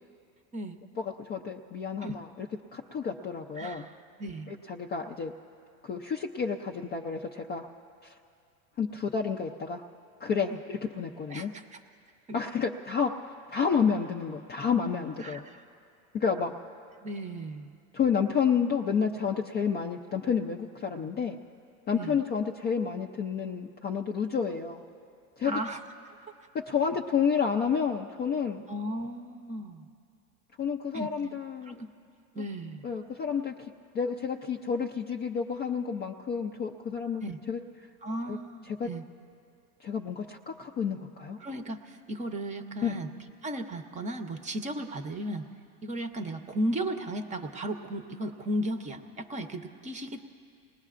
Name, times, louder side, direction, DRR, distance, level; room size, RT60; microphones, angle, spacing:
voice 1, 1.0-3.9 4.5-5.3 5.8-7.7 8.0-8.1 8.8-9.8 10.2-11.5 12.3-15.5 16.1-16.5 17.9-21.4 21.9-24.8 25.4-25.6 26.7-28.6 30.6-31.8 32.4-32.5 32.8-37.2 37.5-37.6 38.3-38.4 38.7-38.9 39.8-41.4 42.8-43.0, left 6 dB, 25° left, 2 dB, 0.4 m, -30 dB
voice 2, 3.6-4.5 11.3-11.6 12.3-12.4 15.2-15.6 17.0-17.8 21.9-22.2 25.4-25.8 28.7-29.9 30.9-31.1 31.7-31.9 32.3-32.8 37.2-37.4 38.0-39.0 41.4-43.1 43.4-45.5 45.8-50.2, right 1 dB, 15° right, 7 dB, 0.7 m, -35 dB
29.5 x 19.5 x 2.5 m, 2.4 s
supercardioid pair, 130°, 44 cm